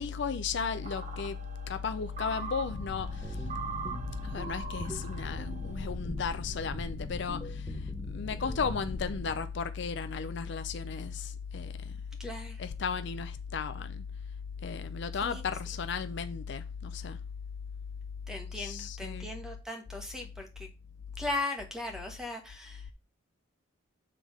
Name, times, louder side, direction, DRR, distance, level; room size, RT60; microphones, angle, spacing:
voice 1, 0.0-1.4 1.7-3.4 4.2-7.7 8.1-11.9 12.6-14.0 14.6-17.2 18.5-19.3, left 5 dB, 60° left, 0.4 m, -34 dB
sound 1, 0.7-5.9, right 5 dB, 35° right, 1.0 m, -43 dB
sound 2, 2.7-9.4, equal, 15° left, 1.1 m, -40 dB
voice 2, 12.2-12.6 15.2-15.4 18.3-20.7 21.2-22.9, left 2 dB, 5° right, 1.2 m, -38 dB
7.4 x 3.5 x 4.8 m
head